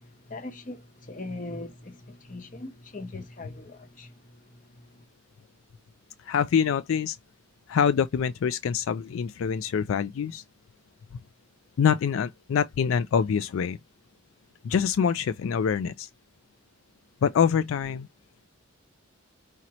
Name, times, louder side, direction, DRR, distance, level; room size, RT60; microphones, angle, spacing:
voice 1, 0.3-4.1 4.7-4.8, left 2 dB, 40° left, 1.0 m, -40 dB
voice 2, 6.2-7.2 7.7-10.4 11.8-13.8 14.6-16.1 17.2-18.1, left 7 dB, 75° left, 0.3 m, -25 dB
5.0 x 2.8 x 3.0 m
head